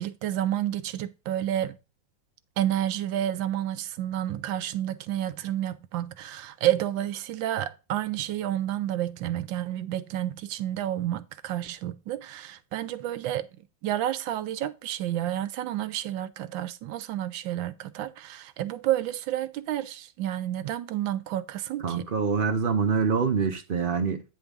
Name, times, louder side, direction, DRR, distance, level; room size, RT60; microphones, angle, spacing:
voice 1, 0.0-1.8 2.6-13.5 13.8-22.1, right 12 dB, 85° right, 1.4 m, -30 dB
voice 2, 21.8-24.2, right 5 dB, 65° right, 0.5 m, -25 dB
9.2 x 3.5 x 5.2 m
omnidirectional pair, 2.1 m